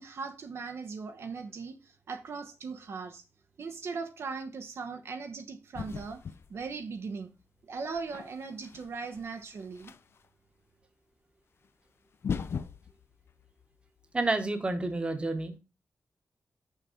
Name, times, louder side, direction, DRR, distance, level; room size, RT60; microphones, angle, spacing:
voice 1, 0.0-3.2 3.6-6.2 6.5-7.3 7.6-9.9, right 4 dB, 70° right, 0.9 m, -39 dB
sound 1, 5.7-7.0 7.8-10.2 11.6-11.7 12.1-14.3, left 6 dB, 65° left, 0.4 m, -39 dB
voice 2, 14.1-15.6, right 2 dB, 25° right, 1.1 m, -29 dB
6.6 x 5.7 x 4.9 m
wide cardioid pair, 145°, 5 cm